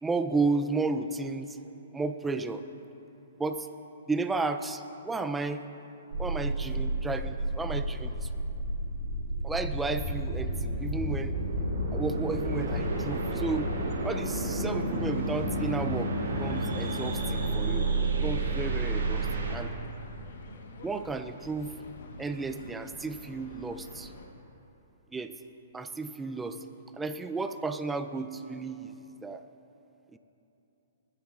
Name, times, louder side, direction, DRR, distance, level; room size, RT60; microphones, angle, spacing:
voice 1, 0.0-1.6 1.9-2.6 3.4-3.7 4.1-5.7 6.2-8.3 9.4-11.3 11.9-13.8 14.0-16.1 16.4-17.9 18.2-19.7 20.8-21.7 22.2-24.1 25.1-25.3 25.7-26.6 27.0-28.9 29.2-29.4 30.1-30.2, right 3 dB, 10° right, 9 dB, 0.5 m, -33 dB
sound 1, 6.1-19.6, right 2 dB, 70° right, 2.6 m, -30 dB
sound 2, 12.8-24.3, left 2 dB, 65° left, 1.3 m, -47 dB
20.0 x 10.5 x 2.5 m, 2.9 s
hypercardioid pair, 125°, 0 cm